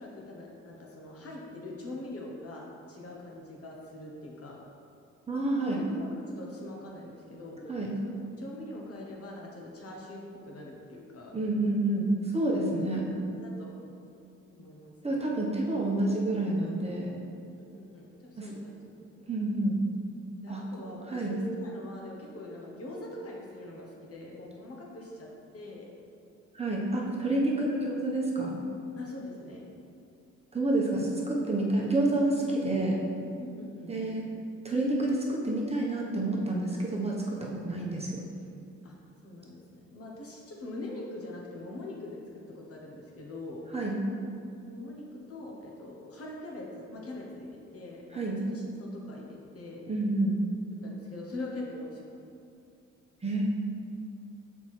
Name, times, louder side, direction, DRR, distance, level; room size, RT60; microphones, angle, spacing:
voice 1, 0.0-4.6 5.6-7.7 8.0-11.3 12.9-13.7 14.5-14.9 17.6-19.2 20.4-25.3 25.5-25.9 27.7-27.8 29.0-29.7 33.4-34.1 38.8-38.9 39.2-43.6 44.7-49.8 50.8-52.4, left 2 dB, 50° left, -2 dB, 1.3 m, -43 dB
voice 2, 5.3-5.8 7.7-7.9 11.3-13.1 15.0-17.1 18.4-18.5 19.3-19.8 20.5-20.6 21.1-21.3 26.5-28.6 30.5-33.0 33.9-34.3 34.6-38.2 43.7-44.0 48.1-48.4 49.9-50.4 53.2-53.4, right 2 dB, 20° right, -3 dB, 1.1 m, -28 dB
5.7 x 4.7 x 4.3 m, 2.6 s
cardioid pair, 90°, 30 cm